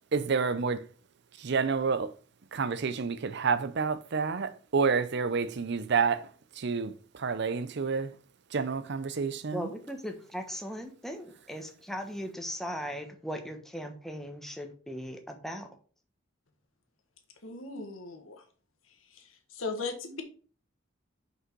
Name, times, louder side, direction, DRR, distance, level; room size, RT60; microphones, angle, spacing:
voice 1, 0.1-0.8 1.4-2.1 2.5-6.3 6.6-8.1 8.5-9.7, right 5 dB, 60° right, 0.6 m, -29 dB
voice 2, 9.5-15.7, equal, ahead, 1.1 m, -38 dB
voice 3, 17.4-18.4 19.1-19.2 19.5-20.2, left 3 dB, 85° left, 1.5 m, -37 dB
6.1 x 5.5 x 4.6 m
head